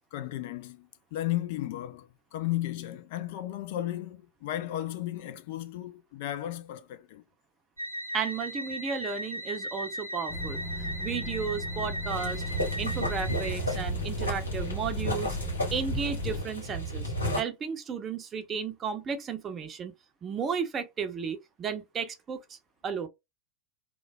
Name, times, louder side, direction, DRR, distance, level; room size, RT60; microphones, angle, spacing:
voice 1, 0.1-7.2 16.3-16.4, left 14 dB, 50° left, 0.4 m, -34 dB
sound 1, 7.8-13.8, equal, 85° right, 0.8 m, -37 dB
voice 2, 8.1-10.6 11.0-12.4 12.8-15.4 15.7-19.9 20.2-22.6 22.8-23.1, right 6 dB, 25° right, 0.6 m, -34 dB
sound 2, 10.3-16.4, left 1 dB, 10° left, 1.5 m, -35 dB
sound 3, 12.1-17.4, equal, 80° left, 1.2 m, -33 dB
3.2 x 2.2 x 2.2 m
figure-of-eight pair, 90°, 0 cm